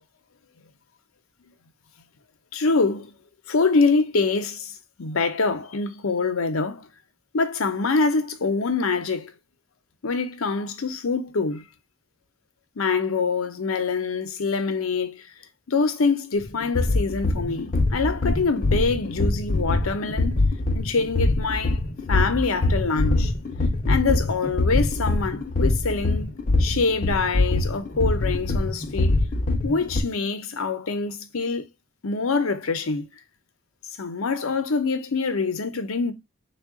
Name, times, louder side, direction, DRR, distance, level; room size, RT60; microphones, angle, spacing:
voice 1, 2.5-3.1 3.5-4.7 5.0-6.9 7.3-9.3 10.0-11.6 12.8-15.3 15.7-20.4 20.7-21.8 22.1-23.3 23.9-26.3 26.6-29.2 29.6-31.7 32.0-33.1 34.0-36.1, left 4 dB, 80° left, 0.7 m, -25 dB
sound 1, 16.4-30.0, left 2 dB, 40° left, 0.6 m, -23 dB
3.5 x 2.2 x 3.5 m
head